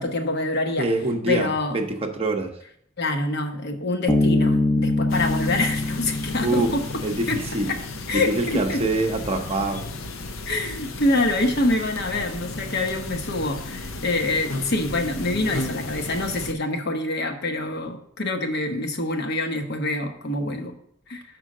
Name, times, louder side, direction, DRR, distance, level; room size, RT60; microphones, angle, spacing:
voice 1, 0.0-0.9 1.3-1.8 3.0-7.0 7.3-7.4 7.7-7.8 8.1-8.8 10.5-20.7 21.1-21.2, left 2 dB, 55° left, 6 dB, 1.0 m, -26 dB
voice 2, 0.8-2.5 6.4-6.7 7.0-7.7 8.1-9.8, right 2 dB, 30° right, 3 dB, 0.7 m, -25 dB
Bass guitar, 4.1-7.6, left 2 dB, 15° left, 0.6 m, -24 dB
sound 1, 5.1-16.5, left 2 dB, 85° left, 0.7 m, -34 dB
6.3 x 4.6 x 6.4 m, 0.67 s
head